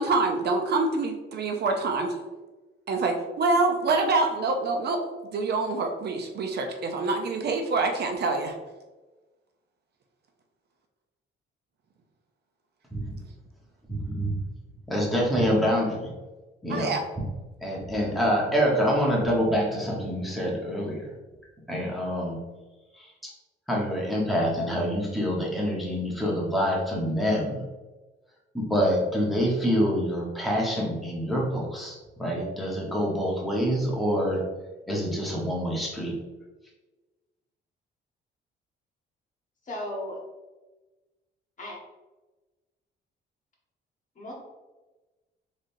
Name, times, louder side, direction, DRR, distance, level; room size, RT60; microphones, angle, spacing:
voice 1, 0.0-2.2 2.9-5.0 5.3-8.5 16.7-17.0, right 3 dB, 55° right, 4 dB, 0.6 m, -26 dB
voice 2, 13.9-14.3 14.9-16.1 16.6-16.9 17.6-21.1 21.7-22.4 23.0-23.3 23.7-27.6 28.5-34.4 34.9-36.2, equal, ahead, -4 dB, 1.2 m, -26 dB
voice 3, 39.7-40.2 41.6-41.8 44.2-44.3, left 1 dB, 40° left, -3 dB, 1.4 m, -35 dB
3.7 x 3.3 x 2.7 m, 1.2 s
cardioid pair, 90°, 20 cm